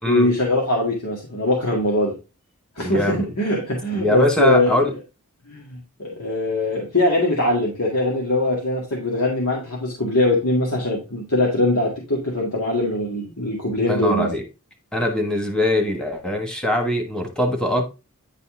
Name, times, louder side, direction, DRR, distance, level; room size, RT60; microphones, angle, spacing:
voice 1, 0.1-2.1 2.8-4.8 5.5-14.3, left 1 dB, 70° left, 2.0 m, -22 dB
voice 2, 2.8-3.3 4.0-4.9 13.9-14.4 14.9-17.8, left 1 dB, 5° left, 1.6 m, -22 dB
10.0 x 4.2 x 3.7 m
head